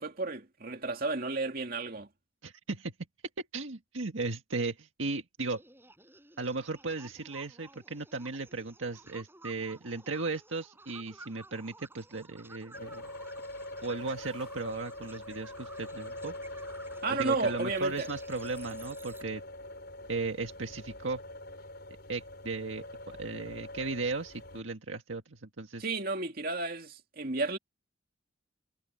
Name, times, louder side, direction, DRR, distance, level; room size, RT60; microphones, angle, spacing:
voice 1, 0.0-2.1 17.0-18.1 25.8-27.6, right 3 dB, 50° right, 2.4 m, -32 dB
voice 2, 2.4-2.9 3.5-5.6 6.4-13.1 13.8-16.3 17.1-19.4 20.1-21.2 22.1-22.8 23.2-25.8, right 3 dB, 85° right, 1.8 m, -36 dB
sound 1, 5.5-19.2, right 2 dB, 10° right, 7.5 m, -54 dB
sound 2, 12.7-24.6, left 1 dB, 55° left, 6.5 m, -43 dB
head